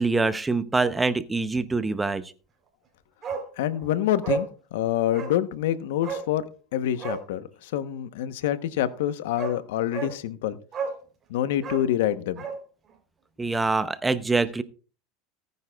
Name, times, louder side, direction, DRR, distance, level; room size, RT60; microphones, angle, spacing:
voice 1, 0.0-2.3 13.4-14.6, right 3 dB, 10° right, 0.7 m, -25 dB
Bark, 3.2-3.5 3.8-3.9 4.2-4.5 5.1-5.4 6.0-6.3 6.9-7.3 8.9-9.0 9.4-9.6 9.9-10.2 10.7-11.0 11.6-12.6 12.9-13.0, right 5 dB, 30° right, 3.5 m, -32 dB
voice 2, 3.6-10.6 11.3-12.4, left 11 dB, 80° left, 0.9 m, -27 dB
18.5 x 9.5 x 2.3 m
supercardioid pair, 115°, 0 cm